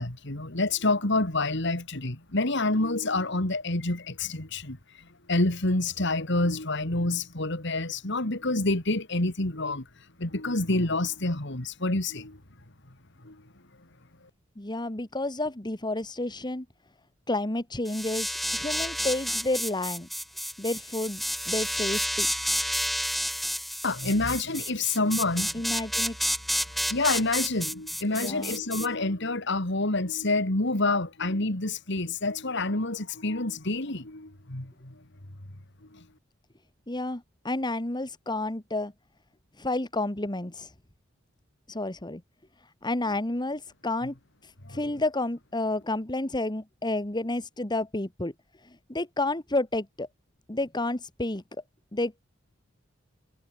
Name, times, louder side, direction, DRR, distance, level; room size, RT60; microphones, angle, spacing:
voice 1, 0.0-4.8 5.3-9.9 10.2-12.4 13.2-13.4 23.8-25.6 26.9-35.0 35.9-36.0 44.6-44.8, left 2 dB, 65° left, 3.1 m, -28 dB
voice 2, 14.6-16.7 17.3-20.1 20.6-22.3 25.5-26.3 28.1-28.6 36.9-38.9 39.6-40.7 41.7-42.2 42.8-44.1 44.4-48.3 48.6-50.1 50.5-51.4 51.9-52.2, left 2 dB, 20° left, 1.8 m, -30 dB
sound 1, 17.9-28.9, equal, ahead, 3.3 m, -30 dB
head